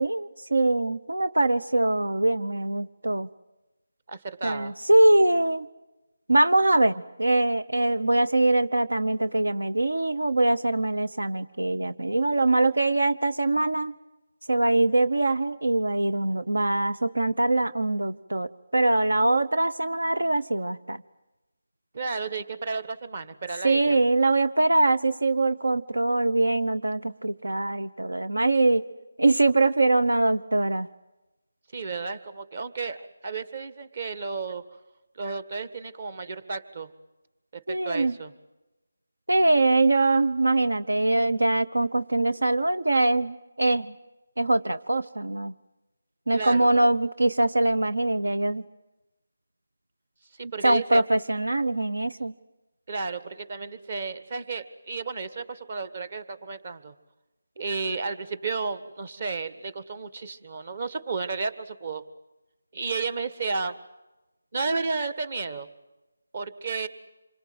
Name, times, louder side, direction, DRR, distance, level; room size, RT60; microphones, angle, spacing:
voice 1, 0.0-3.3 4.4-5.7 6.3-13.9 14.5-21.0 23.6-28.8 29.2-30.9 37.7-38.2 39.3-43.9 44.4-45.5 46.3-48.6 50.6-52.3, right 2 dB, 80° right, 11 dB, 0.9 m, -23 dB
voice 2, 4.1-4.7 21.9-24.0 31.7-34.7 35.2-36.9 37.5-38.3 46.3-46.7 50.4-51.0 52.9-56.9 57.6-62.0 62.7-63.8 64.5-65.7 66.3-66.9, right 4 dB, 45° right, 14 dB, 1.7 m, -32 dB
27.0 x 25.0 x 8.0 m, 1.0 s
figure-of-eight pair, 160°, 0 cm